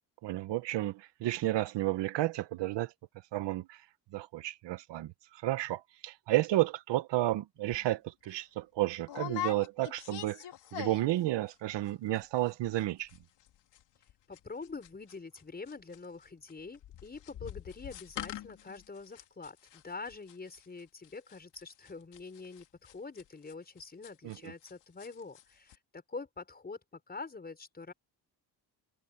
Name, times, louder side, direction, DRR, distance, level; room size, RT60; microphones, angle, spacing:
voice 1, 0.2-2.9 3.3-3.8 4.1-10.5 10.7-13.1 24.2-24.5, right 16 dB, 85° right, 1.0 m, -32 dB
sound 1, 7.7-7.9 8.2-8.4 9.1-11.2 11.5-11.9 12.1-12.2 12.5-12.8 13.1-15.4 15.7-24.7 25.0-25.4 25.7-25.8, left 12 dB, 90° left, 3.4 m, -43 dB
voice 2, 14.3-27.9, left 4 dB, 20° left, 5.2 m, -45 dB
cardioid pair, 140°, 41 cm